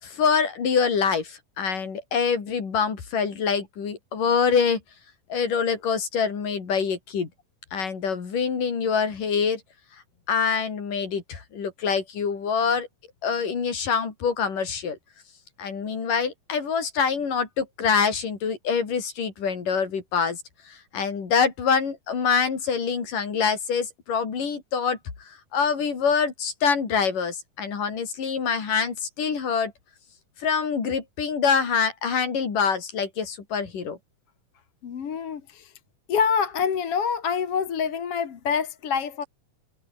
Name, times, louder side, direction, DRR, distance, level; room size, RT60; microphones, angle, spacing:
voice 1, 0.0-4.8 5.3-7.3 7.7-9.6 10.3-12.9 13.2-15.0 15.6-20.4 20.7-25.0 25.5-29.7 30.4-34.0, left 6 dB, 70° left, 5.6 m, -25 dB
voice 2, 34.8-35.7 36.1-39.2, left 6 dB, 45° left, 2.6 m, -26 dB
omnidirectional pair, 4.0 m